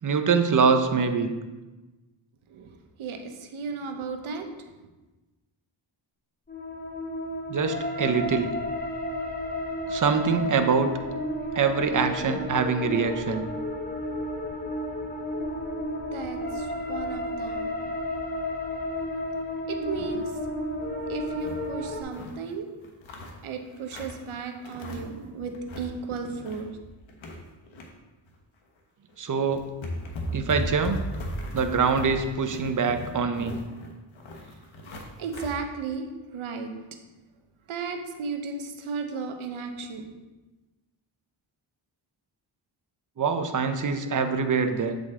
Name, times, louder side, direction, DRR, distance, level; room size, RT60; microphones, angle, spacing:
voice 1, 0.0-1.3 7.5-8.5 9.9-10.9 11.5-13.5 29.2-29.6 30.3-31.0 31.5-33.5 43.2-45.0, right 5 dB, 40° right, 7 dB, 0.8 m, -24 dB
voice 2, 3.0-4.5 16.1-18.1 19.7-20.3 21.1-22.7 23.4-26.8 34.8-36.7 37.7-40.1, right 4 dB, 80° right, 5 dB, 1.0 m, -35 dB
sound 1, 6.5-22.0, left 1 dB, 20° left, 1.1 m, -32 dB
sound 2, 19.9-20.3 20.7-20.8 21.1-22.4 22.8-24.3 24.6-25.2 25.5-25.9 26.3-27.9 28.3-28.4 29.1-29.2 29.5-35.6, equal, 70° left, 1.3 m, -37 dB
7.8 x 5.2 x 3.7 m, 1.2 s
cardioid pair, 75°, 48 cm